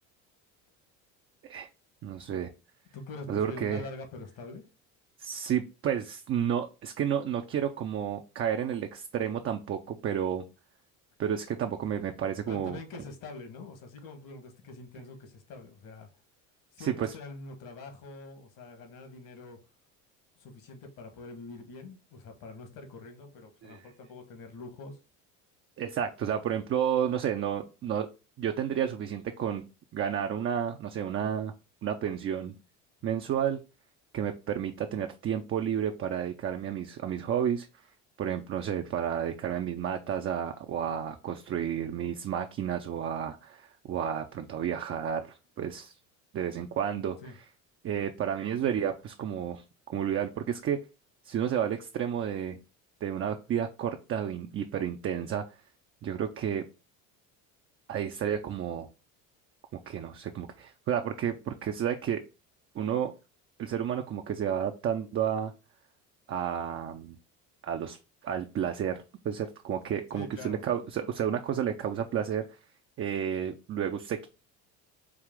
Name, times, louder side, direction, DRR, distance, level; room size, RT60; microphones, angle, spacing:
voice 1, 2.0-2.5 3.3-3.8 5.2-10.4 11.2-12.8 16.8-17.1 23.6-23.9 25.8-28.1 28.4-31.5 31.8-32.5 33.0-33.6 34.1-37.9 38.2-46.0 46.3-47.3 47.8-50.8 51.2-52.6 53.0-55.6 56.0-56.6 57.9-58.9 59.7-62.2 62.7-63.1 63.6-65.5 66.3-67.2 67.6-72.6 73.0-74.3, right 9 dB, 35° right, 0.5 m, -31 dB
voice 2, 2.9-4.6 12.5-16.1 16.7-19.6 20.4-25.0 47.2-47.3 70.1-70.6, left 3 dB, 55° left, 1.4 m, -45 dB
4.8 x 2.4 x 3.6 m
supercardioid pair, 85°, 39 cm